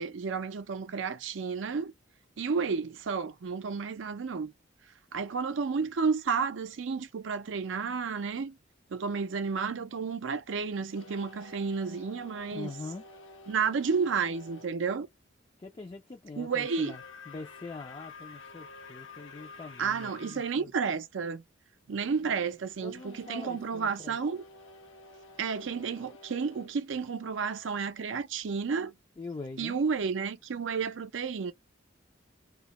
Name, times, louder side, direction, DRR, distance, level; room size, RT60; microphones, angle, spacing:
voice 1, 0.0-1.9 2.4-4.5 5.1-8.6 8.9-12.7 13.5-15.1 16.4-17.0 19.8-21.4 21.9-24.4 25.4-28.9 29.6-31.5, right 5 dB, 70° right, 0.5 m, -31 dB
sound 1, 10.9-14.8 16.4-20.6 22.9-27.8, left 3 dB, 80° left, 0.6 m, -50 dB
voice 2, 12.5-13.0 15.6-17.0 17.3-20.7 22.8-24.2 29.2-29.8, left 3 dB, 25° left, 0.4 m, -43 dB
2.3 x 2.1 x 2.9 m
head